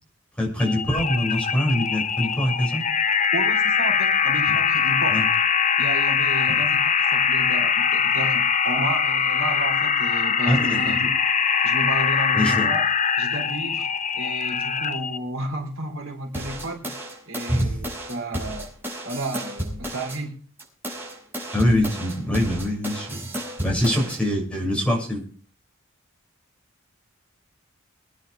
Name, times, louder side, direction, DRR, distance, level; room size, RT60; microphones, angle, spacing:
voice 1, 0.4-2.9 5.1-5.3 6.5-6.6 10.5-10.9 12.3-12.7 17.5-17.8 21.5-23.3 23.6-25.2, left 1 dB, 5° left, -2 dB, 6.8 m, -24 dB
sound 1, 0.6-15.2, left 6 dB, 35° left, 0.7 m, -22 dB
voice 2, 3.3-5.2 5.8-11.1 11.6-12.8 13.2-13.9 14.2-17.0 17.3-18.7 19.0-20.3, right 1 dB, 70° right, 2 dB, 3.8 m, -32 dB
sound 2, 16.3-20.2 20.6-24.2, right 1 dB, 10° right, 6.2 m, -33 dB
25.0 x 10.5 x 3.5 m, 0.42 s
head